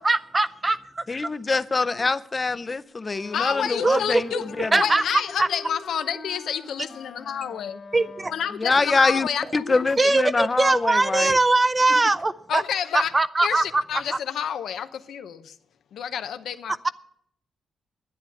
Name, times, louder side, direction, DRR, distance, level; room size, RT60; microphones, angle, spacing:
voice 1, 0.0-1.2 3.8-4.2 4.7-5.0 5.4-5.5 7.9-8.3 10.0-12.6 12.9-13.8 16.8-16.9, right 2 dB, 25° right, 0.6 m, -21 dB
voice 2, 1.1-4.7 8.6-11.4, left 3 dB, 30° left, 0.6 m, -24 dB
Wind instrument woodwind instrument, 3.1-8.6, left 3 dB, 55° left, 1.9 m, -44 dB
voice 3, 3.3-7.8 8.3-10.1 11.9-12.0 12.5-13.1 13.4-15.6 15.9-16.7, left 8 dB, 90° left, 0.7 m, -29 dB
10.5 x 9.9 x 8.3 m
cardioid pair, 95°, 0 cm